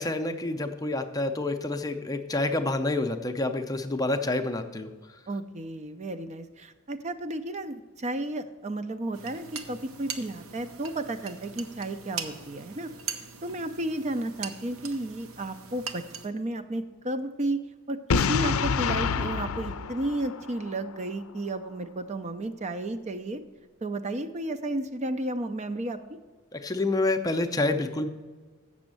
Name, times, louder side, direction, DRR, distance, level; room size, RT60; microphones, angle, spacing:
voice 1, 0.0-4.9 26.5-28.1, left 2 dB, 15° left, 7 dB, 0.5 m, -28 dB
voice 2, 5.3-12.9 13.4-17.6 17.9-23.4 23.8-26.0, right 1 dB, 35° right, 8 dB, 0.5 m, -33 dB
sound 1, 9.1-16.3, right 6 dB, 75° right, 0.9 m, -41 dB
Boom, 18.1-21.0, left 5 dB, 90° left, 0.5 m, -27 dB
7.9 x 6.2 x 7.5 m, 1.4 s
head